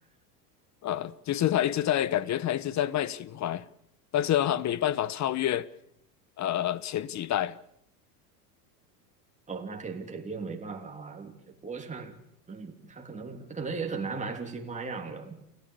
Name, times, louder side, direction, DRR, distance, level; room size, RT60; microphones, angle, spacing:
voice 1, 0.8-3.6 4.1-5.7 6.4-7.6, left 12 dB, 35° left, 1.2 m, -28 dB
voice 2, 9.5-12.2 12.5-15.4, right 4 dB, 15° right, 3.2 m, -37 dB
29.5 x 15.5 x 6.9 m
hypercardioid pair, 90°, 48 cm